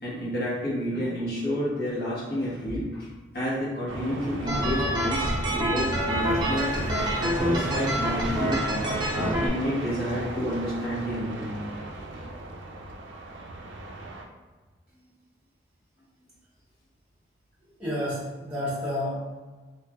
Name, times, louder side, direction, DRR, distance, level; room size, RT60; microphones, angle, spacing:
voice 1, 0.0-3.1 3.3-6.7 7.2-8.6 9.1-11.5, equal, 60° left, -8 dB, 1.2 m, -30 dB
sound 1, 3.9-14.2, right 2 dB, 80° right, 0.4 m, -35 dB
sound 2, 4.5-9.5, equal, 25° right, 0.5 m, -27 dB
voice 2, 17.6-19.2, left 1 dB, 5° right, -10 dB, 1.3 m, -31 dB
3.1 x 2.7 x 2.3 m, 1.3 s
head